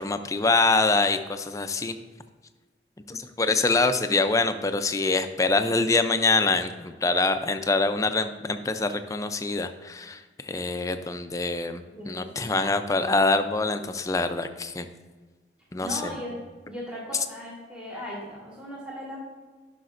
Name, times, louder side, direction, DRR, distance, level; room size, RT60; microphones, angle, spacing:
voice 1, 0.0-1.9 3.1-14.9 15.7-16.1, left 3 dB, 20° left, 9 dB, 0.4 m, -25 dB
voice 2, 11.9-12.5 15.8-16.4 16.7-19.2, equal, 5° right, -6 dB, 1.6 m, -37 dB
12.0 x 5.9 x 2.5 m, 1.4 s
head